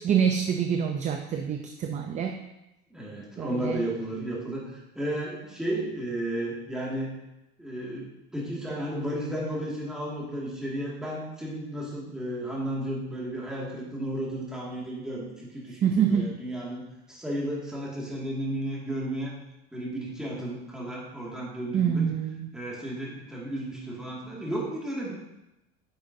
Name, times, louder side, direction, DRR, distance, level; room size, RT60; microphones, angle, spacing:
voice 1, 0.0-2.4 3.4-3.8 15.8-16.3 21.7-22.5, right 8 dB, 25° right, 4 dB, 0.4 m, -26 dB
voice 2, 2.9-7.1 7.6-16.8 17.1-19.3 19.7-22.0 22.5-25.1, right 1 dB, ahead, -5 dB, 2.0 m, -33 dB
9.6 x 6.9 x 2.7 m, 0.92 s
cardioid pair, 150°, 29 cm